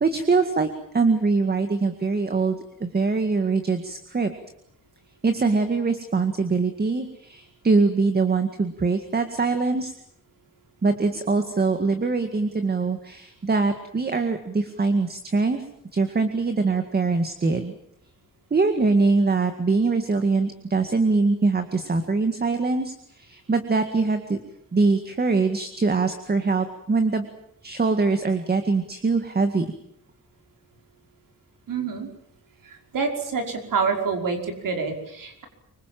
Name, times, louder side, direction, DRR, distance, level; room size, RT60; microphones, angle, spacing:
voice 1, 0.0-0.7 0.9-4.3 5.2-9.9 10.8-15.6 15.9-17.8 18.5-24.4 24.7-27.3 27.6-29.7, right 3 dB, 30° right, 8 dB, 2.0 m, -23 dB
voice 2, 31.7-32.1 32.6-35.4, right 5 dB, 80° right, 4 dB, 5.4 m, -27 dB
26.0 x 25.0 x 7.7 m, 0.74 s
wide cardioid pair, 180°, 32 cm